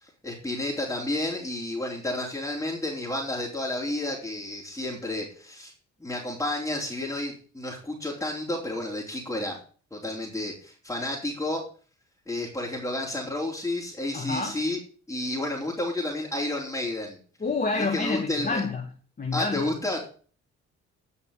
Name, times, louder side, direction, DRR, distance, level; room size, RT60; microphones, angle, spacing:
voice 1, 0.0-5.7 6.0-9.6 9.9-11.6 12.3-14.8 15.1-17.2 17.7-18.6 19.3-20.0, left 1 dB, 10° left, 4.2 m, -31 dB
voice 2, 14.1-14.5 17.4-18.8 19.2-19.7, left 3 dB, 30° left, 2.2 m, -28 dB
10.5 x 6.5 x 6.9 m
cardioid pair, 90°, 30 cm